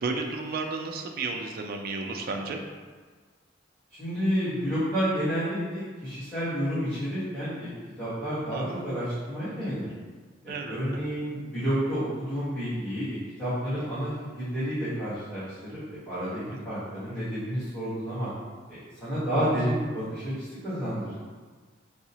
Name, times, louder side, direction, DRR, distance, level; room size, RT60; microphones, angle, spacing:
voice 1, 0.0-2.6 8.5-8.7 10.5-11.0 16.5-16.6, right 3 dB, 50° right, 3 dB, 0.3 m, -33 dB
voice 2, 4.0-7.7 8.0-9.9 10.4-18.3 19.0-21.1, equal, 5° left, -16 dB, 1.2 m, -30 dB
4.6 x 2.0 x 2.8 m, 1.5 s
head